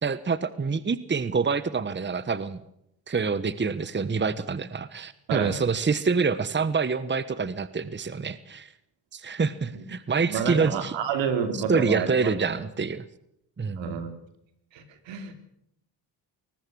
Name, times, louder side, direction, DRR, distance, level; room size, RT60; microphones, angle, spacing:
voice 1, 0.0-2.6 3.1-8.7 9.1-10.9 11.7-13.0 13.6-13.9, right 5 dB, 25° right, 15 dB, 1.2 m, -26 dB
voice 2, 10.3-12.6 13.7-14.2 14.7-15.3, right 6 dB, 80° right, 8 dB, 3.2 m, -30 dB
22.0 x 19.0 x 6.4 m, 0.78 s
supercardioid pair, 65°, 44 cm